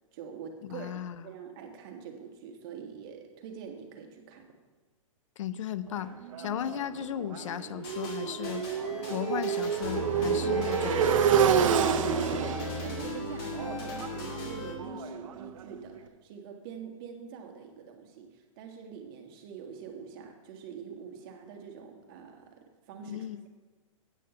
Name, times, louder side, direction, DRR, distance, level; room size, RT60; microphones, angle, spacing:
voice 1, 0.1-4.5 10.2-10.6 10.8-12.4 12.8-15.9 16.2-22.6 22.9-23.5, right 6 dB, 40° right, 3 dB, 1.5 m, -44 dB
voice 2, 0.6-1.3 5.4-6.1 6.4-8.7 9.1-11.1 23.1-23.4, left 10 dB, 65° left, 14 dB, 0.5 m, -35 dB
Motorcycle, 6.0-15.8, right 7 dB, 70° right, 0.8 m, -29 dB
sound 1, 7.8-14.7, left 2 dB, 50° left, 2.6 m, -38 dB
8.6 x 6.5 x 6.7 m, 1.3 s
hypercardioid pair, 145°, 17 cm